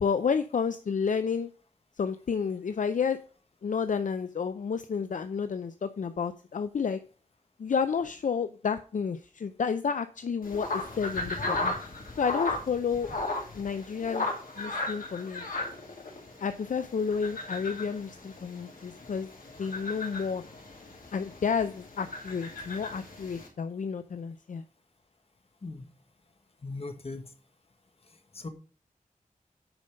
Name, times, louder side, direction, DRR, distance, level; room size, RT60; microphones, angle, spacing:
voice 1, 0.0-1.5 2.0-3.2 3.6-7.0 7.6-11.8 12.2-13.1 13.5-14.3 14.6-15.4 16.4-19.3 19.6-20.4 21.1-24.6, left 6 dB, 65° left, 11 dB, 0.5 m, -30 dB
sound 1, 10.4-23.5, left 2 dB, 85° left, 2.6 m, -36 dB
voice 2, 26.6-27.3 28.3-28.5, left 3 dB, 45° left, 7 dB, 1.3 m, -38 dB
9.0 x 5.3 x 5.2 m, 0.40 s
wide cardioid pair, 95°, 14 cm